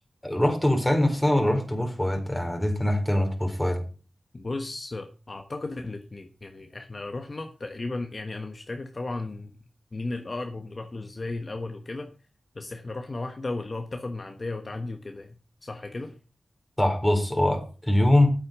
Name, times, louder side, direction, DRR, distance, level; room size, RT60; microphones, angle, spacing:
voice 1, 0.2-3.8 16.8-18.3, left 1 dB, 10° left, 4 dB, 4.1 m, -23 dB
voice 2, 4.3-9.5 9.9-12.1 12.5-16.1, left 2 dB, 45° left, 5 dB, 1.4 m, -35 dB
8.7 x 8.1 x 6.0 m, 0.37 s
cardioid pair, 40°, 0 cm